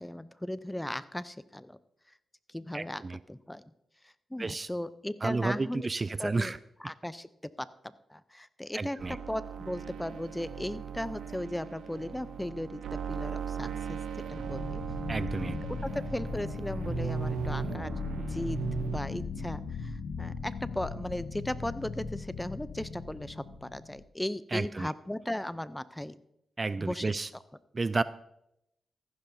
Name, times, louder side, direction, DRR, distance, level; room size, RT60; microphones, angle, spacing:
voice 1, 0.0-1.8 2.5-3.0 3.3-3.6 4.0-5.9 6.2-6.5 6.8-7.3 7.6-7.7 8.1-14.0 14.3-14.8 15.4-17.9 18.2-26.2 26.8-27.1, left 1 dB, 10° left, 15 dB, 0.5 m, -37 dB
voice 2, 2.7-3.2 4.4-4.7 5.2-6.6 8.7-9.2 15.1-15.6 24.5-24.9 26.6-27.3 27.7-28.0, right 3 dB, 35° right, 16 dB, 0.3 m, -31 dB
sound 1, 9.0-19.0, right 7 dB, 80° right, 0.7 m, -38 dB
sound 2, 14.2-24.0, left 4 dB, 70° left, 0.8 m, -38 dB
14.5 x 11.0 x 2.7 m, 0.83 s
supercardioid pair, 50°, 0 cm